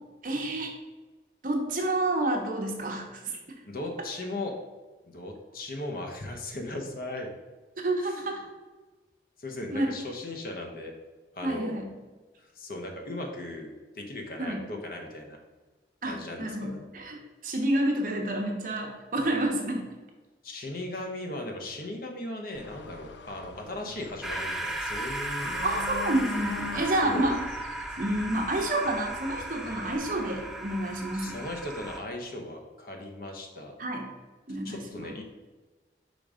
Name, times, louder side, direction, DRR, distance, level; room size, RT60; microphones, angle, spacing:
voice 1, 0.2-0.7 1.4-3.4 7.8-8.4 9.7-9.9 11.4-11.9 14.4-14.6 16.0-19.8 25.6-27.4 28.0-31.4 33.8-34.1 34.5-35.2, right 1 dB, 50° right, 1 dB, 1.0 m, -29 dB
voice 2, 3.7-4.5 5.1-7.3 8.0-8.2 9.4-10.9 11.3-11.8 12.5-15.4 16.0-16.9 20.4-25.8 26.9-27.3 31.1-33.7 34.6-35.2, left 1 dB, 55° left, 2 dB, 0.9 m, -37 dB
sound 1, 22.5-30.0, left 4 dB, 85° left, 0.5 m, -42 dB
sound 2, 24.2-32.0, right 2 dB, ahead, 0.4 m, -36 dB
5.2 x 3.8 x 5.0 m, 1.3 s
head